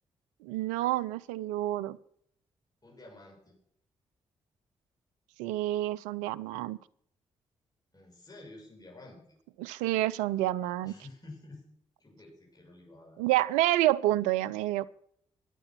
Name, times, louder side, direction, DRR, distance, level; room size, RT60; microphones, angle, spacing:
voice 1, 0.4-2.0 5.4-6.8 9.6-10.9 13.2-14.9, right 15 dB, 85° right, 16 dB, 0.5 m, -28 dB
voice 2, 2.8-3.6 7.9-9.4 10.8-11.7 12.0-13.2, left 2 dB, 30° left, -1 dB, 7.7 m, -50 dB
14.5 x 10.0 x 5.9 m, 0.67 s
hypercardioid pair, 40°, 12 cm